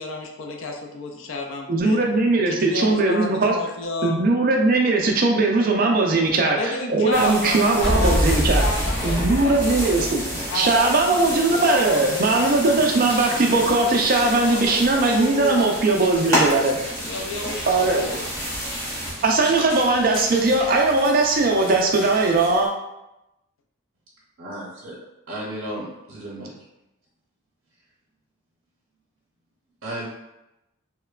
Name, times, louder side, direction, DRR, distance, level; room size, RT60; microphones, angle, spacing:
voice 1, 0.0-2.0 2.5-4.2 6.6-9.9 10.5-11.2 11.5-12.0 12.3-12.5 14.2-14.8 15.0-15.7 17.0-18.3, left 2 dB, 65° left, 2 dB, 0.4 m, -31 dB
voice 2, 1.7-3.5 4.0-8.6 9.0-10.2 10.5-16.8 17.7-18.0 19.2-22.7, right 3 dB, 40° right, 1 dB, 0.3 m, -19 dB
sound 1, 7.1-19.1, equal, 15° left, 0.8 m, -30 dB
sound 2, 7.8-11.2, equal, 85° left, 0.8 m, -24 dB
sound 3, 12.3-22.7, equal, 50° left, 0.8 m, -37 dB
voice 3, 24.4-25.0 25.3-26.5 29.8-30.1, right 1 dB, 75° right, -6 dB, 0.7 m, -34 dB
3.0 x 2.1 x 2.3 m, 0.91 s
head